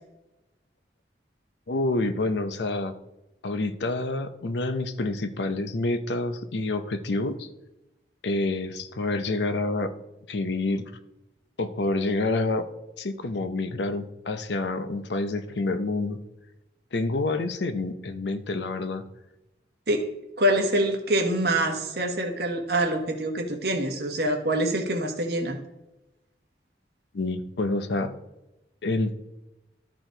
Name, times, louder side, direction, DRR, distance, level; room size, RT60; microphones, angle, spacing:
voice 1, 1.7-2.9 3.4-7.5 8.2-9.9 10.3-10.8 11.6-12.6 13.0-16.2 16.9-19.0 27.1-28.1 28.8-29.2, left 2 dB, 75° left, 11 dB, 0.7 m, -28 dB
voice 2, 20.4-25.6, right 1 dB, 60° right, 3 dB, 1.3 m, -25 dB
13.0 x 4.6 x 3.8 m, 0.97 s
head